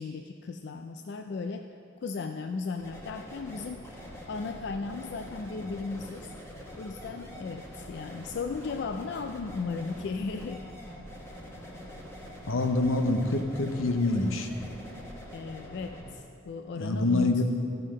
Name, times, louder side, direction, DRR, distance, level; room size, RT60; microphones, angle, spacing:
voice 1, 0.0-1.7 2.0-4.0 4.3-6.3 6.8-10.6 15.3-17.4, left 4 dB, 55° left, 6 dB, 0.3 m, -36 dB
sound 1, 2.8-16.1, equal, 15° left, 1.1 m, -44 dB
voice 2, 12.5-14.5 16.8-17.4, left 2 dB, 80° left, 6 dB, 0.8 m, -26 dB
14.0 x 5.4 x 5.3 m, 2.7 s
head